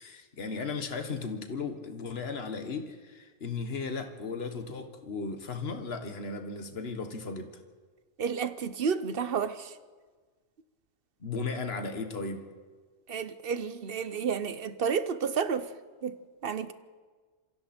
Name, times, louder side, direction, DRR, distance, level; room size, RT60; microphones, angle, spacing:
voice 1, 0.0-7.5 11.2-12.5, left 4 dB, 60° left, 1.8 m, -36 dB
voice 2, 8.2-9.7 13.1-15.7 16.0-16.2 16.4-16.7, right 6 dB, 55° right, 1.0 m, -31 dB
27.0 x 23.5 x 4.4 m
omnidirectional pair, 1.2 m